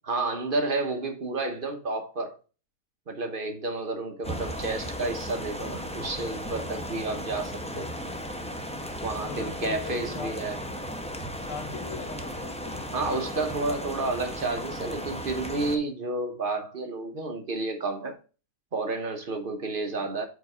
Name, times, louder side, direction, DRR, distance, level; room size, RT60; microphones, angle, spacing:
voice 1, 0.1-2.4 3.1-7.9 9.0-10.6 12.9-18.2 18.7-20.2, right 3 dB, 45° right, 1.1 m, -31 dB
sound 1, 4.2-15.8, equal, 5° left, 0.6 m, -36 dB
voice 2, 9.3-10.4 11.4-12.9, left 5 dB, 75° left, 1.2 m, -40 dB
5.2 x 4.6 x 4.8 m
omnidirectional pair, 1.3 m